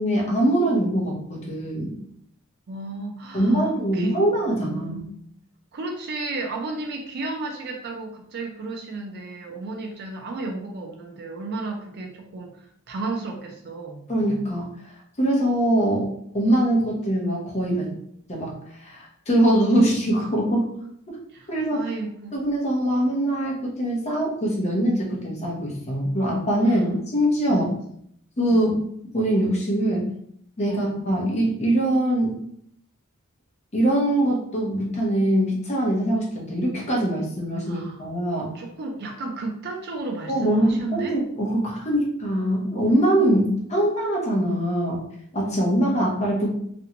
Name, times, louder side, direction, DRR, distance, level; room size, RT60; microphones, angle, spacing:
voice 1, 0.0-2.0 3.3-5.0 14.1-14.7 15.2-16.1 16.3-17.9 18.3-20.7 21.1-21.2 21.5-21.8 22.3-27.7 28.4-28.8 29.1-30.0 30.6-32.3 33.7-38.5 40.3-45.0 45.3-46.6, right 1 dB, 30° left, -3 dB, 0.7 m, -23 dB
voice 2, 2.7-4.2 4.5-5.2 5.7-14.1 21.3-22.4 26.7-26.8 27.5-27.8 28.5-28.7 30.7-30.9 37.7-38.1 38.5-41.2, right 3 dB, 50° right, 2 dB, 0.4 m, -33 dB
2.5 x 2.2 x 2.8 m, 0.69 s
head